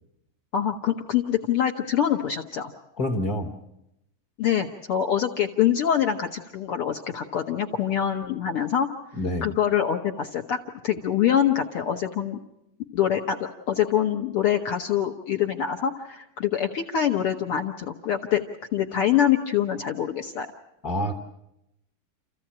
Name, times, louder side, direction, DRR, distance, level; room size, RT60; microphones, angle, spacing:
voice 1, 0.5-2.7 4.4-8.9 9.4-12.4 12.9-18.4 18.7-20.5, left 9 dB, 70° left, 4 dB, 1.3 m, -25 dB
voice 2, 3.0-3.5 9.1-9.5 20.8-21.2, left 1 dB, 50° left, 3 dB, 1.1 m, -27 dB
28.5 x 15.0 x 8.7 m, 0.85 s
omnidirectional pair, 3.8 m